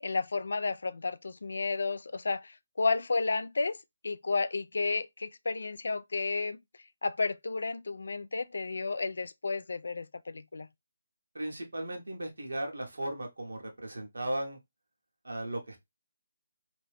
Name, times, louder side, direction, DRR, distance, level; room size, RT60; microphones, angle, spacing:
voice 1, 0.0-3.8 4.0-6.6 7.0-10.7, left 3 dB, 65° left, 0.3 m, -32 dB
voice 2, 11.3-14.6 15.2-15.8, right 1 dB, 75° right, 1.1 m, -36 dB
3.0 x 2.7 x 3.2 m
figure-of-eight pair, 150°, 0 cm